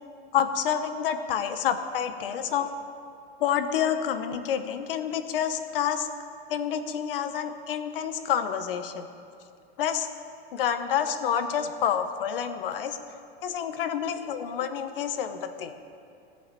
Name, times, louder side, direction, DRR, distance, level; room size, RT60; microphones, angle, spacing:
voice 1, 0.3-2.7 3.4-6.1 6.5-9.1 9.8-10.1 10.5-13.0 13.4-15.8, left 8 dB, 60° left, 8 dB, 1.0 m, -28 dB
16.0 x 5.7 x 8.1 m, 2.5 s
supercardioid pair, 155°, 32 cm